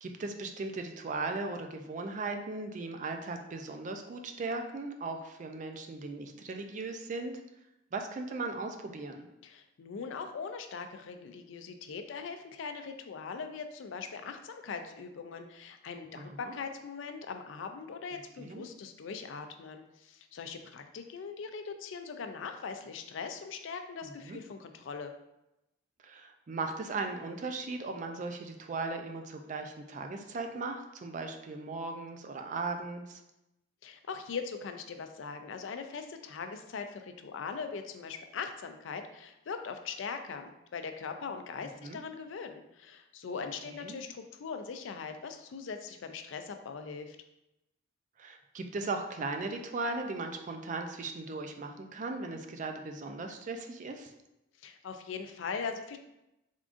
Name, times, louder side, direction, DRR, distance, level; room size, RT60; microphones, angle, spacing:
voice 1, 0.0-7.3 7.9-9.3 16.1-16.5 18.1-18.7 24.0-24.4 26.0-33.2 41.8-42.0 43.8-44.0 48.2-54.1, right 3 dB, 40° right, 5 dB, 0.4 m, -37 dB
voice 2, 9.4-25.1 33.8-47.2 54.6-56.0, left 5 dB, 80° left, 7 dB, 0.4 m, -41 dB
3.6 x 3.6 x 2.5 m, 0.90 s
head